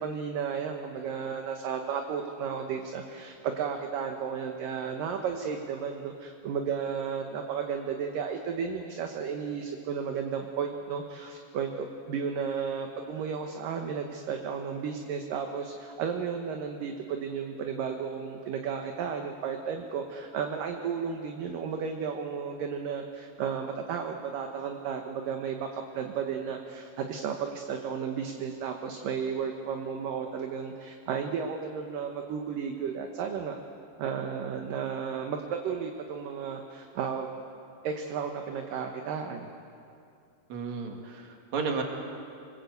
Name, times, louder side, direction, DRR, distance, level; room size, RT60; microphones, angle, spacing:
voice 1, 0.0-33.6 34.0-37.3 37.8-39.5, right 6 dB, 65° right, 3 dB, 2.5 m, -33 dB
voice 2, 40.5-41.8, right 5 dB, 45° right, 2 dB, 3.2 m, -33 dB
26.5 x 21.5 x 8.1 m, 2.5 s
omnidirectional pair, 4.9 m